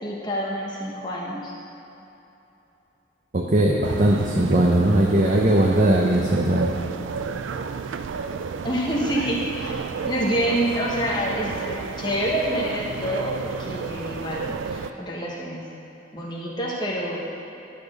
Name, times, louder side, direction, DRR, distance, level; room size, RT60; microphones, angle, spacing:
voice 1, 0.0-1.5 8.6-9.7 10.0-13.3 13.6-15.6 16.1-17.2, equal, 25° left, -4 dB, 1.3 m, -27 dB
voice 2, 3.3-6.8, right 1 dB, 40° right, -1 dB, 0.6 m, -19 dB
sound 1, 3.8-14.9, right 5 dB, 90° right, 0.4 m, -32 dB
11.5 x 4.3 x 6.4 m, 3.0 s
head